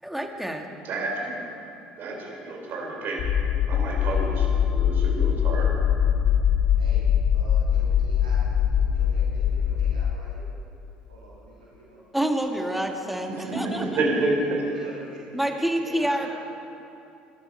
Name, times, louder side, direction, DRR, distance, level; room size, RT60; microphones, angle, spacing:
voice 1, 0.0-0.7 12.1-14.0 15.3-16.3, right 1 dB, 5° right, 3 dB, 1.9 m, -27 dB
voice 2, 0.8-1.5 2.0-3.3 3.7-5.8 13.3-14.6, right 2 dB, 50° right, -1 dB, 4.0 m, -29 dB
sound 1, 3.2-10.1, left 9 dB, 55° left, 0.7 m, -22 dB
voice 3, 7.3-10.5 11.1-12.3 12.5-15.4 15.7-16.3, right 2 dB, 90° right, -7 dB, 3.3 m, -46 dB
20.5 x 12.5 x 4.5 m, 2.7 s
hypercardioid pair, 60°, 4 cm